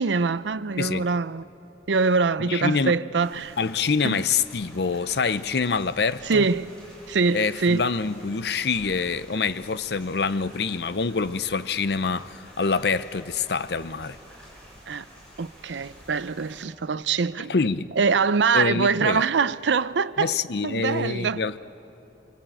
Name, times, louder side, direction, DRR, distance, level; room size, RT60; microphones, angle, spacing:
voice 1, 0.0-1.4 1.9-3.5 4.0-4.2 6.3-6.7 7.1-7.9 14.9-15.0 15.4-17.5 18.0-20.3 20.6-21.4, right 4 dB, 85° right, 0.6 m, -24 dB
voice 2, 2.4-2.9 3.6-6.5 7.3-14.2 17.4-17.9 18.5-19.2 20.2-21.6, left 4 dB, 65° left, 0.6 m, -26 dB
sound 1, 3.2-16.6, equal, 5° left, 7.5 m, -49 dB
25.0 x 24.5 x 9.0 m
head